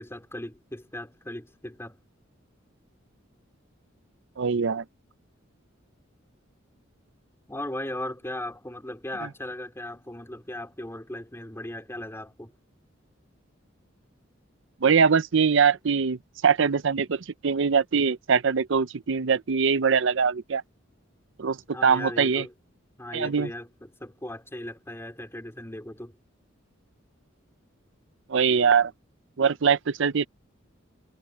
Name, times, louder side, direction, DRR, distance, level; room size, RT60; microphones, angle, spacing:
voice 1, 0.0-2.0 7.5-12.5 21.7-22.5 23.0-26.2, left 1 dB, 15° left, 3.7 m, -37 dB
voice 2, 4.4-4.8 9.2-9.3 14.8-20.6 21.4-22.4 23.1-23.5 28.3-28.9 29.4-30.3, right 6 dB, 70° right, 0.6 m, -22 dB
head